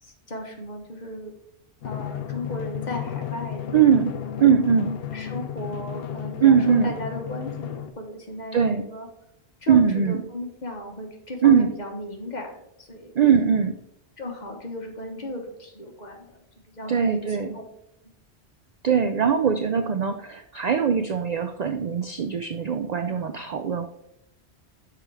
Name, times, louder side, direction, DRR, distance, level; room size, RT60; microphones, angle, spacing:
voice 1, 0.0-1.3 1.8-4.2 5.1-9.1 9.6-13.1 14.2-17.6 23.0-23.3, left 1 dB, 40° left, 2 dB, 1.3 m, -36 dB
Drum, 1.8-7.9, left 10 dB, 65° left, 0.8 m, -33 dB
voice 2, 3.7-4.1 4.4-4.9 6.4-6.9 8.5-8.9 9.7-10.2 11.4-11.7 13.2-13.8 16.9-17.6 18.8-23.9, right 7 dB, 55° right, 8 dB, 0.4 m, -21 dB
6.3 x 4.7 x 4.8 m, 0.79 s
omnidirectional pair, 1.1 m